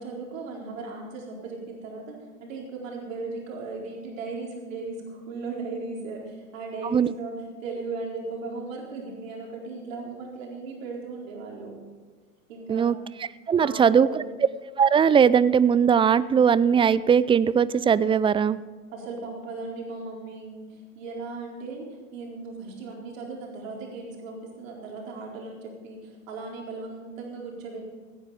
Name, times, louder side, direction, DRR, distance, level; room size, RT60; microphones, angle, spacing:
voice 1, 0.0-2.2 2.4-11.7 12.5-13.0 13.6-14.3 18.9-21.9 22.1-27.9, right 3 dB, 75° right, -2 dB, 4.4 m, -37 dB
voice 2, 13.5-14.1 14.8-18.6, right 7 dB, 15° right, 18 dB, 0.4 m, -19 dB
17.0 x 9.9 x 4.9 m, 1.4 s
hypercardioid pair, 85°, 39 cm